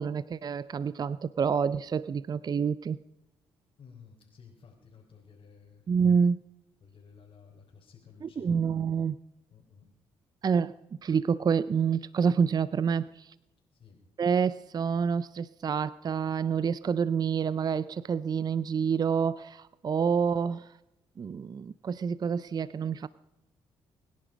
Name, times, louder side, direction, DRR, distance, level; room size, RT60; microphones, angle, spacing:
voice 1, 0.0-3.0 5.9-6.4 8.2-9.2 10.4-10.7 11.0-13.3 14.2-20.7 21.2-23.1, right 6 dB, 40° right, 18 dB, 0.5 m, -28 dB
voice 2, 3.8-5.9 6.8-8.7 9.5-9.9 13.7-14.0, left 6 dB, 55° left, -3 dB, 3.9 m, -54 dB
23.5 x 10.5 x 5.1 m, 0.89 s
supercardioid pair, 60°, 11 cm